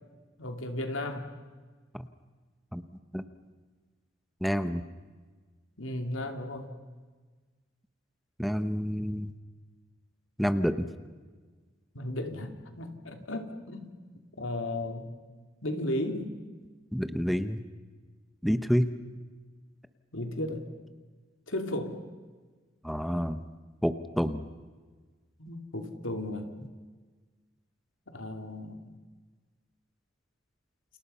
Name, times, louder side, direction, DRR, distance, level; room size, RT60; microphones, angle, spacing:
voice 1, 0.4-1.3 5.8-6.7 11.9-13.9 14.4-15.1 15.6-16.3 20.1-20.6 21.5-22.0 25.4-26.6 28.1-28.8, left 1 dB, 90° left, 5 dB, 2.9 m, -35 dB
voice 2, 4.4-4.8 8.4-9.3 10.4-10.9 16.9-17.6 18.4-18.9 22.8-23.5 23.8-24.5, equal, ahead, 10 dB, 0.9 m, -28 dB
29.5 x 28.0 x 5.7 m, 1.4 s
head